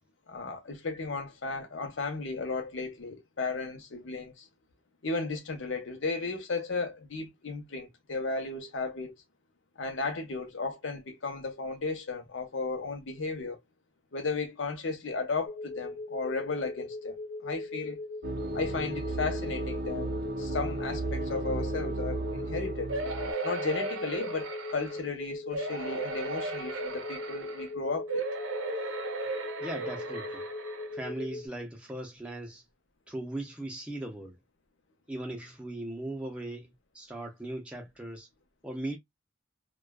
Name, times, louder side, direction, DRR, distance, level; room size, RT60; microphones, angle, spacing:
voice 1, 0.3-4.5 5.0-9.2 9.8-13.6 14.1-18.0 18.5-22.9 23.4-28.2, left 3 dB, 70° left, 0.8 m, -35 dB
sound 1, 15.5-31.5, left 2 dB, 45° left, 0.4 m, -40 dB
sound 2, 18.2-23.3, right 2 dB, 50° right, 0.4 m, -34 dB
sound 3, 22.9-25.1 25.5-27.7 28.1-30.9 31.5-31.6 31.9-32.0, right 3 dB, 85° right, 0.7 m, -36 dB
voice 2, 29.6-30.4 30.9-32.6 33.1-34.4 35.1-38.3 38.6-39.0, right 1 dB, 5° right, 0.6 m, -38 dB
2.4 x 2.2 x 2.2 m
head